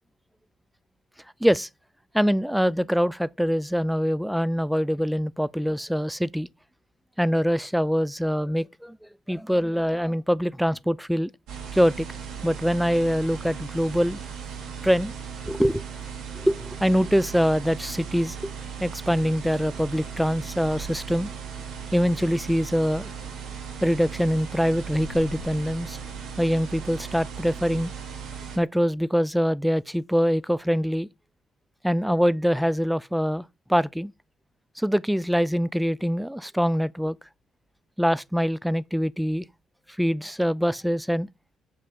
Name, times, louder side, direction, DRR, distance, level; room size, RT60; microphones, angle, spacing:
voice 1, 2.1-6.5 7.2-9.0 9.3-11.3 11.7-12.1 12.4-14.2 14.8-15.1 15.5-15.8 16.4-18.5 18.8-21.3 21.9-23.1 23.8-26.0 26.4-27.9 28.6-31.1 31.8-34.1 34.8-37.2 38.0-39.5 40.0-41.3, equal, ahead, 0.3 m, -24 dB
sound 1, 11.5-28.6, right 6 dB, 85° right, 3.2 m, -37 dB
6.4 x 5.6 x 5.1 m
cardioid pair, 90°, 0 cm